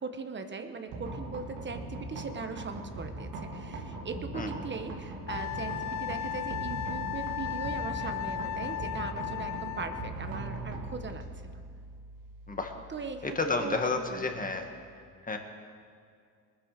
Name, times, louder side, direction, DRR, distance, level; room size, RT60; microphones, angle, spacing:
voice 1, 0.0-11.6 12.9-14.5, right 4 dB, 40° right, 7 dB, 1.2 m, -40 dB
sound 1, 0.9-14.8, right 2 dB, 90° right, 2.5 m, -40 dB
Wind instrument woodwind instrument, 5.3-10.1, left 12 dB, 70° left, 0.6 m, -36 dB
voice 2, 13.2-14.7 15.2-15.4, left 3 dB, 25° left, 4 dB, 1.8 m, -31 dB
20.0 x 10.0 x 6.7 m, 2.2 s
cardioid pair, 90°, 30 cm